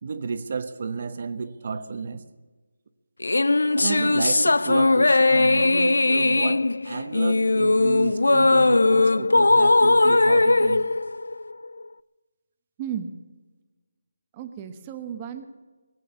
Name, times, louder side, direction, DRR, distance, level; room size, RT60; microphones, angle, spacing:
voice 1, 0.0-2.2 3.8-10.8, right 5 dB, 40° right, 11 dB, 1.0 m, -32 dB
sound 1, 3.2-11.8, left 2 dB, 90° left, 0.4 m, -19 dB
voice 2, 12.8-13.2 14.3-15.5, right 8 dB, 15° right, 8 dB, 1.0 m, -34 dB
20.0 x 8.4 x 7.1 m, 1.3 s
figure-of-eight pair, 170°, 0 cm